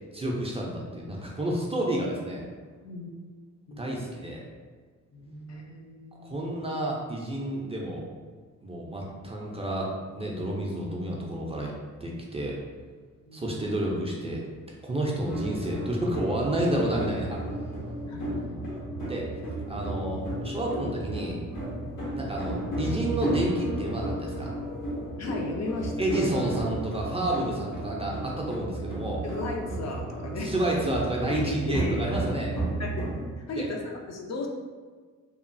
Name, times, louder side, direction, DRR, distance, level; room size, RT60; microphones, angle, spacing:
voice 1, 0.1-2.4 3.8-4.4 6.2-8.0 8.6-11.7 12.0-12.6 13.3-14.4 14.8-17.4 19.1-19.3 19.7-21.4 22.2-24.5 26.0-29.2 30.4-32.5 33.6-33.7, right 1 dB, 20° right, -2 dB, 0.4 m, -30 dB
voice 2, 5.1-6.4 13.2-13.7 18.1-18.7 25.2-26.3 29.2-30.5 31.3-32.0 32.8-33.0 33.4-34.5, left 2 dB, 55° left, 0 dB, 0.5 m, -35 dB
sound 1, 15.3-33.3, right 1 dB, 75° left, 1.0 m, -33 dB
3.0 x 2.3 x 2.5 m, 1.5 s
cardioid pair, 110°, 32 cm